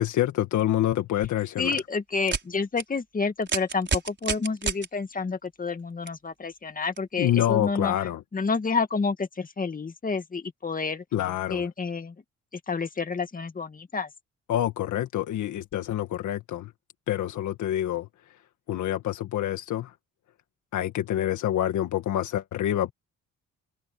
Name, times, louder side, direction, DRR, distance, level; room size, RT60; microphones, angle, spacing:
voice 1, 0.0-1.8 7.2-8.2 11.1-11.7 14.5-16.7 17.1-18.1 18.7-19.9 20.7-22.9, left 12 dB, 75° left, 1.7 m, -27 dB
voice 2, 1.6-11.0 11.5-12.2 12.5-14.1, left 4 dB, 30° left, 2.0 m, -29 dB
sound 1, 1.6-1.8 2.2-2.4 2.8-2.9 3.4-4.9 6.1-6.2 7.0-7.1, right 5 dB, 40° right, 5.7 m, -29 dB
cardioid pair, 90°, 30 cm